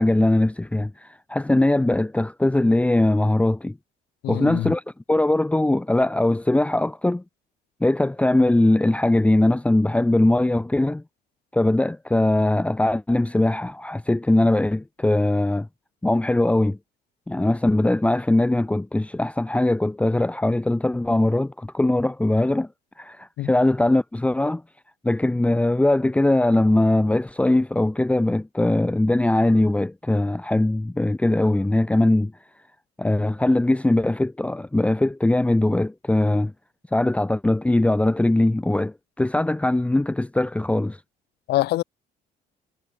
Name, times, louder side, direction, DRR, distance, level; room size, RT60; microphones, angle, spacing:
voice 1, 0.0-3.8 4.3-4.8 5.1-7.2 7.8-11.0 11.5-15.7 16.0-16.8 17.3-22.7 23.0-24.6 25.0-32.3 33.0-36.5 36.9-41.0, left 1 dB, 5° left, 0.9 m, -21 dB
voice 2, 4.2-4.7 23.4-23.5 41.5-41.8, left 16 dB, 80° left, 2.7 m, -24 dB
cardioid pair, 110°, 17 cm